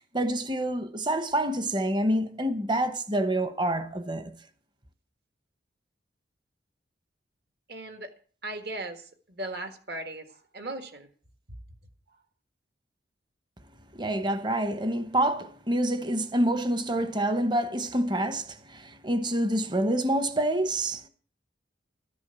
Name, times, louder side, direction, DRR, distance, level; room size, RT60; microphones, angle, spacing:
voice 1, 0.1-4.3 13.9-21.1, right 1 dB, 25° right, 1.0 m, -27 dB
voice 2, 7.7-8.1 8.4-11.1, right 1 dB, 55° right, 1.7 m, -38 dB
13.5 x 10.5 x 6.9 m
head